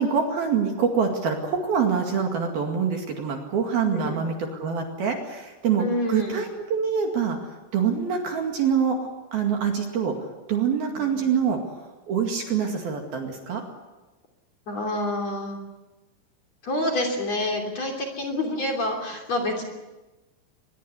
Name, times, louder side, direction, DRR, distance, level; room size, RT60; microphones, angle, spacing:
voice 1, 0.0-7.4 7.7-10.2 10.5-11.6 12.1-13.6, right 6 dB, 55° right, 3 dB, 3.6 m, -25 dB
voice 2, 5.8-6.4 10.9-11.2 14.7-15.6 16.6-19.6, left 1 dB, 35° left, 2 dB, 3.6 m, -27 dB
24.0 x 21.5 x 8.2 m, 1.1 s
omnidirectional pair, 6.0 m